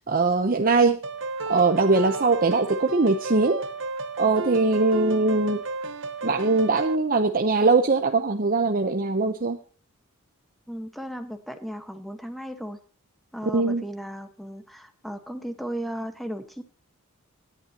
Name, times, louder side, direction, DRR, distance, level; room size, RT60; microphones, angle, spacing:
voice 1, 0.1-1.0 1.5-3.6 4.2-5.6 6.2-9.6 13.5-13.8, right 3 dB, 40° right, 5 dB, 0.9 m, -21 dB
sound 1, 1.0-7.0, right 3 dB, 60° right, 1.1 m, -33 dB
voice 2, 10.7-12.8 13.3-16.6, equal, ahead, 7 dB, 1.4 m, -35 dB
17.5 x 11.0 x 3.0 m, 0.41 s
head